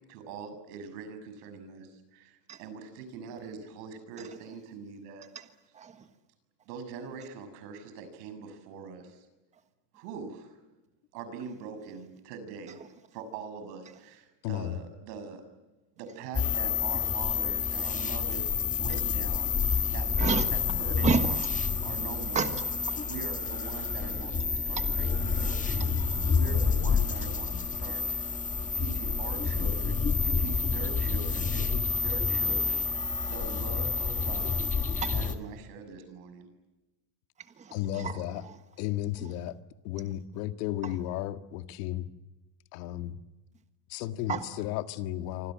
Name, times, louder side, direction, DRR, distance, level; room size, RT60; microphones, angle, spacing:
voice 1, 0.0-5.3 6.6-9.3 9.9-10.6 11.1-12.8 13.1-15.4 16.0-22.6 23.1-28.3 28.7-34.6 35.0-36.5, right 5 dB, 80° right, 10 dB, 6.9 m, -43 dB
voice 2, 5.7-6.1 20.2-20.5 21.0-21.4 22.3-23.0 24.7-24.9 25.8-26.1 35.0-35.2 37.4-38.6 39.2-39.3 40.8-40.9 44.3-44.5, right 5 dB, 15° right, 9 dB, 1.4 m, -32 dB
voice 3, 14.4-14.8 37.7-38.4 38.8-39.6 39.8-42.0 42.7-43.2 43.9-45.5, left 13 dB, 85° left, 9 dB, 2.0 m, -34 dB
sound 1, 16.3-35.3, left 5 dB, 15° left, 1.5 m, -29 dB
28.0 x 25.0 x 7.6 m, 1.1 s
cardioid pair, 175°, 46 cm